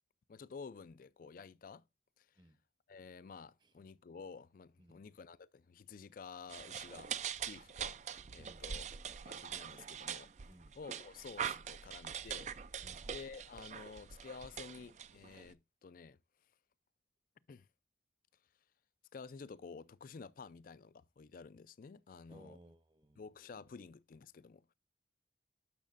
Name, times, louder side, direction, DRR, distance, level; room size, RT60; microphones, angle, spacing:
voice 1, 0.3-1.8 2.2-2.4 2.9-8.8 9.2-10.3 10.8-12.5 13.1-16.2 17.5-17.7 19.1-22.6 23.2-24.7, left 5 dB, 50° left, 0.4 m, -51 dB
sound 1, 6.5-15.5, right 8 dB, 40° right, 0.4 m, -43 dB
voice 2, 8.4-8.9 10.5-10.8 12.8-13.1 22.3-23.2, right 1 dB, 25° right, 0.8 m, -60 dB
10.5 x 6.3 x 2.5 m
head